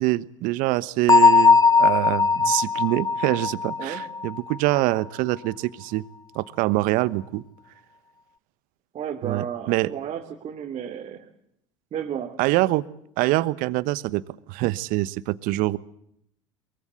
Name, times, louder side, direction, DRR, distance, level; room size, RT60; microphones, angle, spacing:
voice 1, 0.0-6.0 6.3-7.4 9.2-9.9 12.4-12.8 13.2-14.2 14.5-15.8, right 19 dB, 60° right, 18 dB, 1.2 m, -24 dB
Bell, 1.1-4.7, left 4 dB, 20° left, 0.9 m, -19 dB
voice 2, 8.9-11.2 11.9-12.4, right 8 dB, 40° right, 1 dB, 3.0 m, -33 dB
23.5 x 23.0 x 8.2 m, 0.75 s
hypercardioid pair, 75°, 16 cm